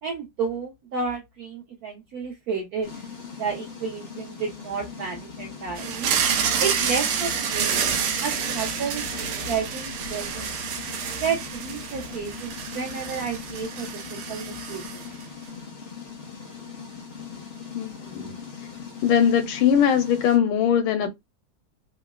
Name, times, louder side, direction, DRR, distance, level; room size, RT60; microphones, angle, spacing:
voice 1, 0.0-3.0 3.4-6.1 6.6-7.8 8.2-9.0 9.5-10.5 11.2-15.0, right 5 dB, 75° right, 0.9 m, -31 dB
sound 1, 2.8-20.4, left 6 dB, 50° left, 0.7 m, -40 dB
sound 2, 5.8-15.2, right 7 dB, 90° right, 1.5 m, -28 dB
voice 2, 17.7-18.4 19.0-21.1, left 8 dB, 85° left, 1.5 m, -21 dB
3.7 x 2.0 x 2.3 m
omnidirectional pair, 2.3 m